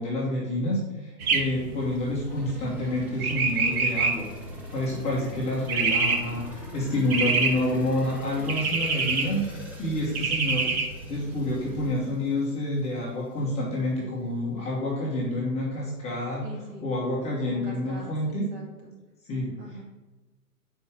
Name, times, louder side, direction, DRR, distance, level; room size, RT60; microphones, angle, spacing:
voice 1, 0.0-4.3 4.7-10.8 11.1-16.5 16.8-18.5 19.2-19.6, left 1 dB, 15° left, -6 dB, 1.2 m, -28 dB
sound 1, 1.2-11.9, right 4 dB, 65° right, 1.2 m, -28 dB
sound 2, 2.3-13.0 13.4-13.5, equal, 5° right, 0.7 m, -47 dB
voice 2, 16.4-16.9 17.4-18.9 19.6-19.8, right 1 dB, 40° right, -2 dB, 2.3 m, -43 dB
5.1 x 4.6 x 6.2 m, 1.2 s
hypercardioid pair, 140°, 48 cm